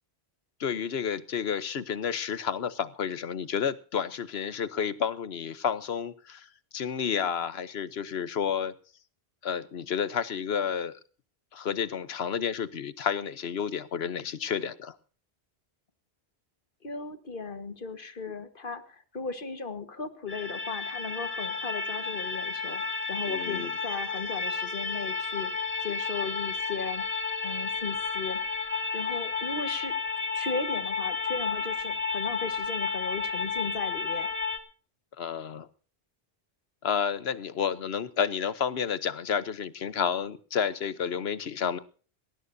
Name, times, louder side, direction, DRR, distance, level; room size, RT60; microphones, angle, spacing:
voice 1, 0.6-6.5 6.7-8.7 9.4-11.0 11.5-14.9 23.3-23.7 35.2-35.7 36.8-41.8, left 7 dB, 75° left, 15 dB, 1.1 m, -30 dB
voice 2, 16.8-22.8 23.1-25.5 25.8-27.0 27.4-29.9 30.3-34.3, left 4 dB, 55° left, 10 dB, 1.7 m, -36 dB
sound 1, 20.3-34.6, left 4 dB, 35° left, 1.7 m, -32 dB
19.5 x 18.0 x 2.7 m, 0.40 s
omnidirectional pair, 1.1 m